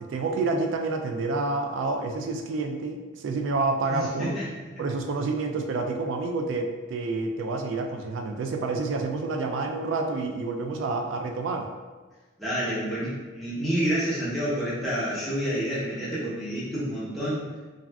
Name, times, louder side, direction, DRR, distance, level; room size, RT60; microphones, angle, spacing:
voice 1, 0.0-4.4 4.8-11.7, right 3 dB, 85° right, 5 dB, 0.3 m, -28 dB
voice 2, 3.9-4.5 12.4-17.5, equal, ahead, -10 dB, 0.8 m, -29 dB
2.3 x 2.3 x 3.3 m, 1.3 s
head